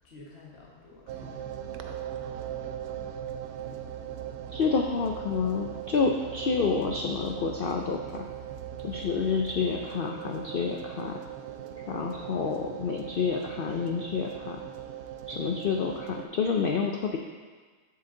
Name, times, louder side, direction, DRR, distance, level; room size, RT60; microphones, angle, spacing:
voice 1, 0.0-1.8 11.7-12.1, left 1 dB, 45° left, -3 dB, 1.5 m, -51 dB
sound 1, 1.1-16.2, right 10 dB, 85° right, 1.1 m, -39 dB
voice 2, 4.5-8.2 8.8-11.2 11.9-14.6 15.3-17.2, left 5 dB, 65° left, 2 dB, 0.5 m, -29 dB
7.5 x 7.3 x 3.8 m, 1.5 s
omnidirectional pair, 1.6 m